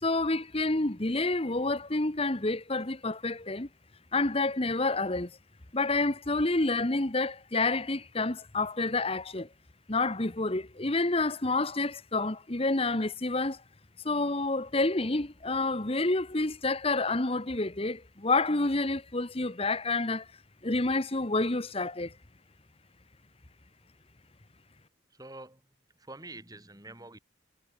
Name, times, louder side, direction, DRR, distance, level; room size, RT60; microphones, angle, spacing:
voice 1, 0.0-3.7 4.1-5.3 5.7-9.5 9.9-13.6 14.0-20.3 20.6-22.1, left 2 dB, 30° left, 1.3 m, -28 dB
voice 2, 25.1-27.2, right 2 dB, 20° right, 6.1 m, -47 dB
head